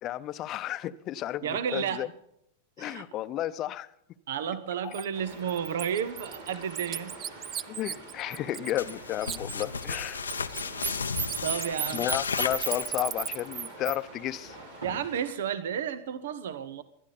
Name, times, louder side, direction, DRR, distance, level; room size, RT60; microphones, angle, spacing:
voice 1, 0.0-2.1 2.8-3.9 4.8-4.9 7.7-10.2 11.9-14.6, left 13 dB, 40° left, 0.7 m, -33 dB
voice 2, 1.4-2.1 2.8-3.0 4.3-7.1 11.4-12.1 14.8-16.8, right 8 dB, 70° right, 0.9 m, -32 dB
Bird, 4.9-5.0 5.5-8.9 9.2-14.0, right 9 dB, 30° right, 0.5 m, -35 dB
sound 1, 5.1-15.3, right 1 dB, 90° right, 4.4 m, -46 dB
sound 2, 8.8-13.3, left 5 dB, 85° left, 0.6 m, -34 dB
20.0 x 12.0 x 4.1 m
hypercardioid pair, 95°, 0 cm